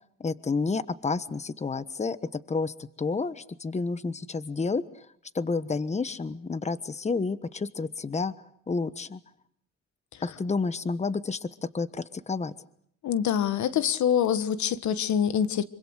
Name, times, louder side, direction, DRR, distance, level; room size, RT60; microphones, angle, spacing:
voice 1, 0.2-5.1 5.3-8.3 8.7-9.2 10.2-11.5 11.7-12.5, left 4 dB, 25° left, 1.2 m, -30 dB
voice 2, 13.0-15.6, left 9 dB, 70° left, 1.5 m, -25 dB
26.5 x 24.5 x 6.5 m
cardioid pair, 90°, 30 cm